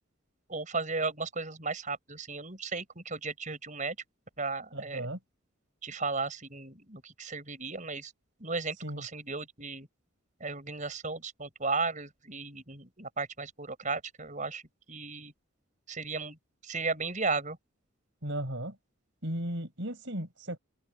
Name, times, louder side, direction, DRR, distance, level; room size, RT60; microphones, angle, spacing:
voice 1, 0.5-3.9 4.4-5.1 5.8-8.1 8.4-9.9 10.4-14.6 14.9-15.3 15.9-16.4 16.6-17.6, right 4 dB, 35° right, 6.5 m, -35 dB
voice 2, 4.7-5.2 8.8-9.0 18.2-18.7 19.2-20.6, right 1 dB, 60° right, 7.6 m, -35 dB
head